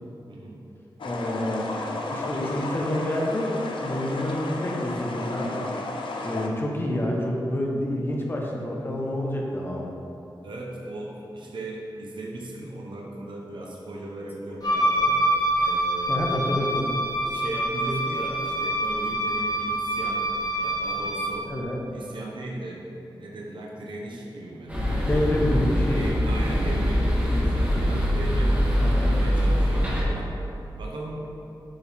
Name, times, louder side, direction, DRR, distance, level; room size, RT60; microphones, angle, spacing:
voice 1, 0.3-0.7 10.4-15.2 15.6-16.2 16.7-16.9 17.3-20.3 20.6-21.5 21.9-22.8 23.2-24.8 25.9-30.3 30.8-31.3, right 1 dB, 70° right, -1 dB, 1.0 m, -37 dB
sound 1, 1.0-6.5, left 2 dB, 85° left, 0.6 m, -33 dB
voice 2, 1.0-1.7 2.1-5.7 6.2-10.0 16.1-16.7 21.5-21.8 25.1-26.0 28.8-29.1, left 1 dB, 25° left, -2 dB, 0.9 m, -28 dB
Wind instrument woodwind instrument, 14.6-21.4, right 1 dB, 50° left, 1.1 m, -26 dB
sound 2, 24.7-30.0, equal, 15° right, 1.5 m, -23 dB
8.6 x 4.6 x 3.6 m, 2.8 s
wide cardioid pair, 125°, 8 cm